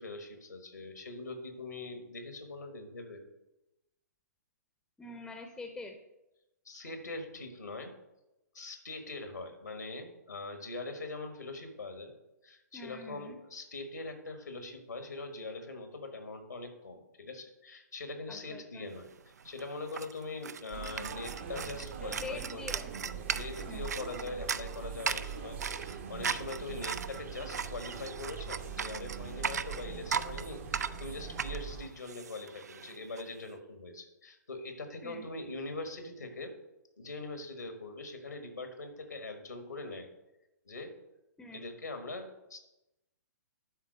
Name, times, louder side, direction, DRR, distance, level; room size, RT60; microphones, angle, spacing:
voice 1, 0.0-3.2 6.6-7.9 8.5-12.1 12.4-19.1 19.4-22.6 23.3-36.5 37.0-40.1 40.6-41.0 41.5-42.6, left 2 dB, 75° left, 6 dB, 1.5 m, -42 dB
voice 2, 5.0-6.0 12.7-13.4 18.3-18.9 22.0-22.9 23.7-23.9 35.0-35.3 41.4-41.6, left 2 dB, 5° left, 4 dB, 0.8 m, -45 dB
sound 1, 19.1-19.2 19.4-33.2, right 6 dB, 65° right, 0.4 m, -38 dB
sound 2, 20.7-31.9, right 6 dB, 40° right, 0.9 m, -42 dB
11.5 x 3.9 x 6.2 m, 0.94 s
figure-of-eight pair, 120°, 10 cm